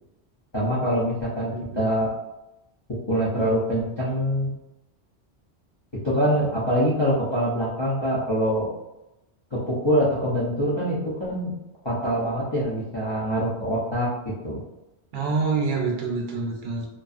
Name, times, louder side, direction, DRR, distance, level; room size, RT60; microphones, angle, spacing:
voice 1, 0.5-2.1 3.1-4.5 6.0-8.7 9.5-11.5 11.8-14.1 14.4-14.6, equal, 35° left, -9 dB, 0.5 m, -24 dB
voice 2, 1.5-1.9 15.1-16.9, right 4 dB, 70° right, 0 dB, 0.8 m, -26 dB
2.6 x 2.3 x 2.4 m, 0.94 s
omnidirectional pair, 1.1 m